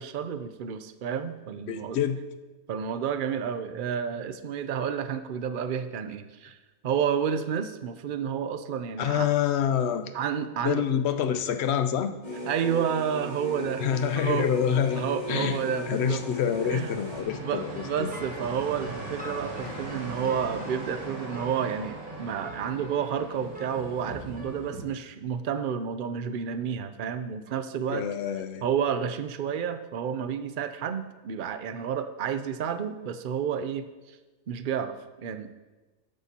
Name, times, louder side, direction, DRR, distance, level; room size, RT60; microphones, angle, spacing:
voice 1, 0.0-2.0 2.7-6.6 6.8-9.3 10.1-10.9 12.5-13.9 14.1-14.5 15.0-16.2 16.7-16.9 17.4-28.1 28.6-34.2 34.5-35.5, right 8 dB, 60° right, 10 dB, 0.5 m, -30 dB
voice 2, 1.7-2.2 9.0-10.1 10.6-12.1 13.8-15.6 15.9-18.1 19.6-19.7 27.9-28.6, left 8 dB, 55° left, 9 dB, 0.8 m, -27 dB
sound 1, 11.7-24.8, right 2 dB, 75° right, 2.6 m, -41 dB
sound 2, 12.2-17.2, left 1 dB, 30° left, 2.8 m, -37 dB
sound 3, 17.4-24.5, equal, 10° right, 0.5 m, -45 dB
12.5 x 10.5 x 2.9 m, 1.2 s
omnidirectional pair, 1.5 m